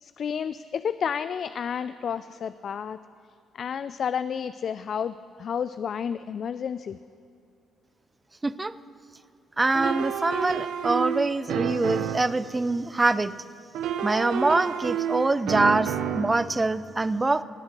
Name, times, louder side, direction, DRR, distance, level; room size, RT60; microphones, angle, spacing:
voice 1, 0.0-3.0 3.5-7.0, left 7 dB, 55° left, 13 dB, 0.3 m, -31 dB
voice 2, 8.4-8.7 9.6-13.3 14.0-17.4, right 2 dB, 20° right, 15 dB, 0.5 m, -24 dB
sound 1, 9.7-12.4 13.7-16.4, right 9 dB, 80° right, 0.7 m, -29 dB
19.0 x 8.1 x 6.7 m, 2.6 s
cardioid pair, 90°, 0 cm